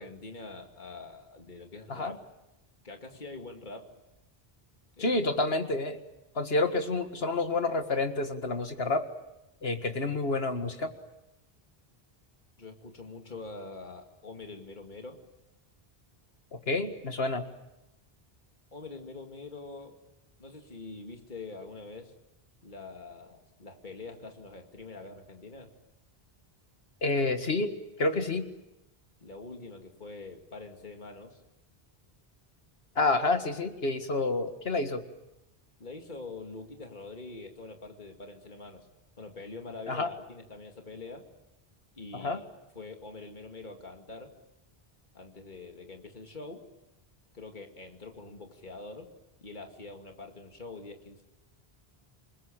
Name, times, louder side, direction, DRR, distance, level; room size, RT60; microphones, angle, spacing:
voice 1, 0.0-2.2 2.8-3.9 5.0-5.3 10.0-10.2 12.6-15.2 18.7-20.0 20.4-22.1 22.6-25.7 29.2-31.4 35.8-38.9 39.2-41.3 41.9-42.5 42.7-44.3 45.1-46.7 47.3-49.1 49.4-51.2, left 3 dB, 50° left, 4 dB, 2.5 m, -44 dB
voice 2, 5.0-6.0 6.4-9.0 9.6-10.9 16.7-17.4 27.0-27.7 28.0-28.5 33.0-35.0 39.9-40.1 42.1-42.4, left 2 dB, 75° left, 7 dB, 2.2 m, -28 dB
28.5 x 21.0 x 9.1 m, 0.94 s
omnidirectional pair, 1.0 m